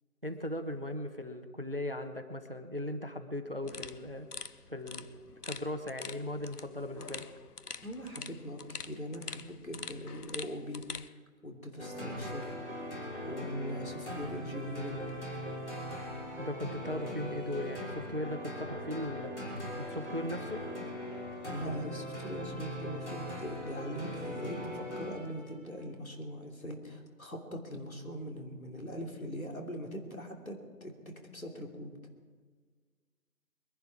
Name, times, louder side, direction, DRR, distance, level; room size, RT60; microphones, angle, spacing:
voice 1, 0.2-4.3 4.7-5.1 5.4-7.3 16.4-20.6, left 1 dB, 40° right, 7 dB, 1.0 m, -38 dB
sound 1, 3.6-11.1, left 5 dB, 85° left, 0.9 m, -45 dB
voice 2, 7.8-12.5 13.2-15.1 21.4-30.9 31.3-32.0, equal, 65° left, 1 dB, 3.1 m, -41 dB
sound 2, 11.8-25.5, equal, 50° left, 3.2 m, -40 dB
23.0 x 11.0 x 4.7 m, 1.6 s
figure-of-eight pair, 180°, 45 cm